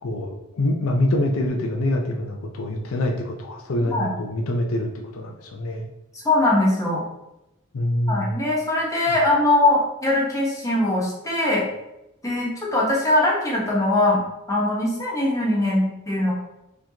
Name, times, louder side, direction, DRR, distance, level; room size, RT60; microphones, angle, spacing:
voice 1, 0.0-5.9 7.7-8.4, left 1 dB, 75° left, 2 dB, 0.5 m, -25 dB
voice 2, 3.8-4.1 6.2-7.0 8.1-11.7 12.2-14.2 14.5-16.3, left 2 dB, 15° left, -4 dB, 1.0 m, -21 dB
4.2 x 2.9 x 2.8 m, 0.90 s
head